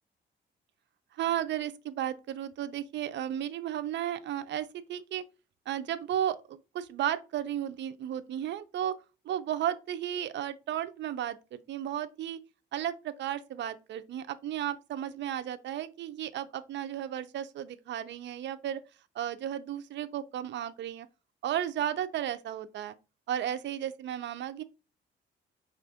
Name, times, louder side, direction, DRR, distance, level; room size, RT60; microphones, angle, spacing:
voice 1, 1.1-5.2 5.7-9.0 9.2-12.4 12.7-18.8 19.1-21.1 21.4-23.0 23.3-24.6, right 11 dB, 65° right, 0.5 m, -34 dB
5.1 x 2.5 x 3.4 m
cardioid pair, 90°, 20 cm